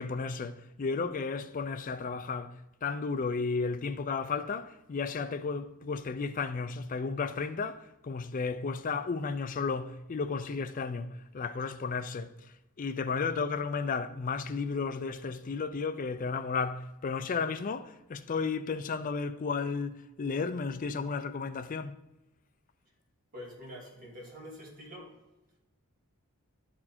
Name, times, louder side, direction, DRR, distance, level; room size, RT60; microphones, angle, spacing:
voice 1, 0.0-22.0, left 4 dB, 35° left, 0.4 m, -33 dB
voice 2, 23.3-25.1, equal, 40° right, 2.6 m, -46 dB
11.0 x 4.4 x 4.3 m
head